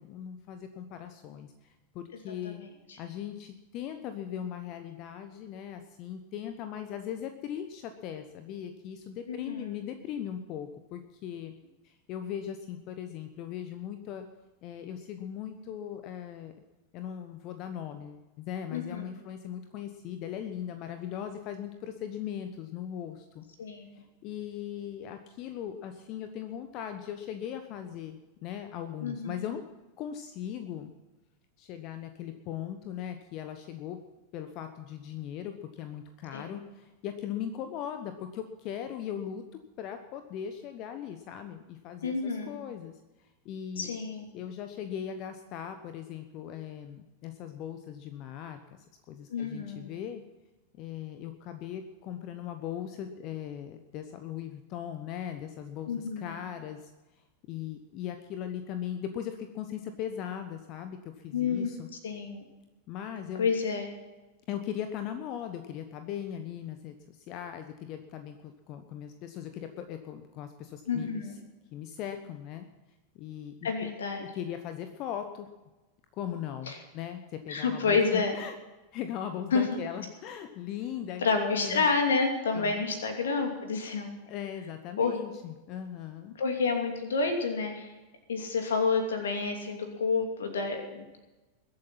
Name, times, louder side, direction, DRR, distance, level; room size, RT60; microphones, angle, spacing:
voice 1, 0.0-2.6 3.0-11.5 11.8-14.2 14.6-16.5 16.9-23.4 23.9-29.6 30.0-30.9 31.6-34.0 34.3-39.4 39.8-44.0 44.3-50.2 50.7-57.2 57.5-61.9 62.9-63.5 64.5-71.4 71.7-72.7 73.1-73.9 74.2-75.5 76.1-78.5 78.9-81.2 81.5-81.9 82.5-82.8 84.3-86.3, left 9 dB, 40° left, 8 dB, 1.1 m, -39 dB
voice 2, 9.3-9.8 18.7-19.1 23.6-23.9 29.0-29.3 36.3-36.6 42.0-42.6 43.8-44.2 49.3-49.9 55.9-56.3 61.3-61.7 62.0-62.4 63.4-63.9 70.9-71.3 73.6-74.2 76.7-76.8 77.5-78.4 79.5-79.6 81.2-84.2 85.0-85.1 86.4-87.9 88.3-91.2, left 4 dB, 65° left, 4 dB, 2.7 m, -29 dB
22.0 x 8.5 x 5.8 m, 1.1 s
figure-of-eight pair, 90°, 0 cm